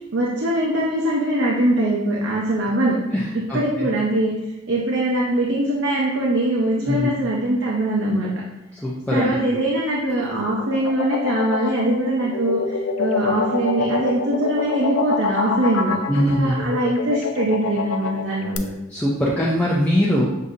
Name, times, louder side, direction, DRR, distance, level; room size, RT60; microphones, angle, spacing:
voice 1, 0.1-3.0 3.5-4.3 4.7-8.3 9.1-18.7, right 1 dB, 65° right, -4 dB, 0.6 m, -22 dB
voice 2, 3.1-3.9 6.8-7.1 8.7-9.6 16.1-16.7 18.9-20.2, equal, 5° left, -7 dB, 0.4 m, -22 dB
sound 1, 10.1-18.6, left 5 dB, 85° left, 0.4 m, -26 dB
6.5 x 2.7 x 2.5 m, 0.93 s
head